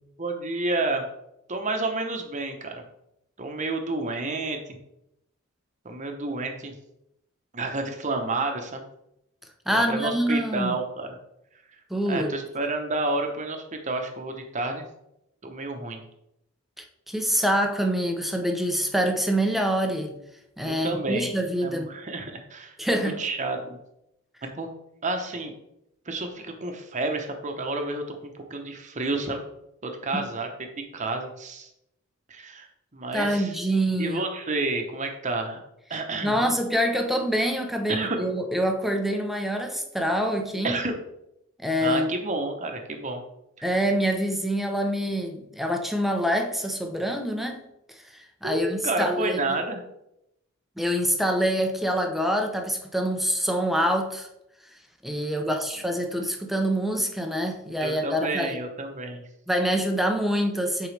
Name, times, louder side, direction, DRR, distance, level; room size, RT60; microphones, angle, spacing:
voice 1, 0.2-1.1 1.5-2.8 3.4-4.8 5.8-6.7 7.5-8.9 9.7-11.1 12.1-14.8 15.4-16.0 20.6-21.3 21.6-23.8 24.4-24.7 25.0-25.5 26.1-29.4 29.8-30.5 30.9-31.7 32.3-32.7 32.9-33.5 34.0-35.6 35.9-36.4 37.9-38.2 40.6-41.0 41.8-43.2 48.4-49.8 55.1-55.6 57.8-59.2, right 2 dB, 35° right, 4 dB, 1.0 m, -30 dB
voice 2, 9.7-10.7 11.9-12.3 16.8-20.1 20.6-21.9 22.8-23.2 30.1-30.3 33.1-34.2 36.2-40.8 41.6-42.1 43.6-47.6 48.1-49.6 50.8-54.3 55.0-58.6 59.5-60.9, equal, ahead, 4 dB, 0.6 m, -26 dB
7.9 x 4.6 x 3.3 m, 0.83 s
head